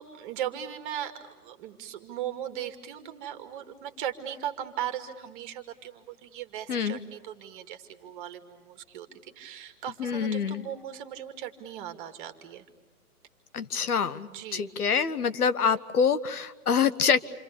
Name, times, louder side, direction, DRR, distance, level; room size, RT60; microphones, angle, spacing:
voice 1, 0.0-12.6 14.3-14.7, right 10 dB, 35° right, 8 dB, 2.5 m, -38 dB
voice 2, 6.7-7.0 10.0-10.7 13.5-17.2, left 6 dB, 75° left, 13 dB, 1.4 m, -26 dB
28.5 x 26.5 x 6.8 m, 1.2 s
hypercardioid pair, 140°, 44 cm